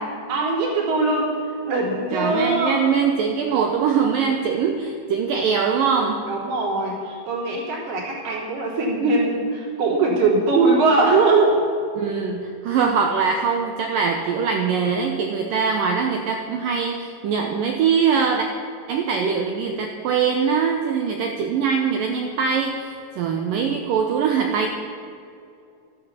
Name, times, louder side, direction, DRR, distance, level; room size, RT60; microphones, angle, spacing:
voice 1, 0.0-1.4 1.7-2.9 6.3-11.6, right 3 dB, 60° right, -3 dB, 5.5 m, -21 dB
voice 2, 2.1-6.3 12.0-18.5 18.9-24.7, right 6 dB, 85° right, 3 dB, 1.9 m, -22 dB
13.5 x 13.0 x 7.3 m, 2.5 s
omnidirectional pair, 5.3 m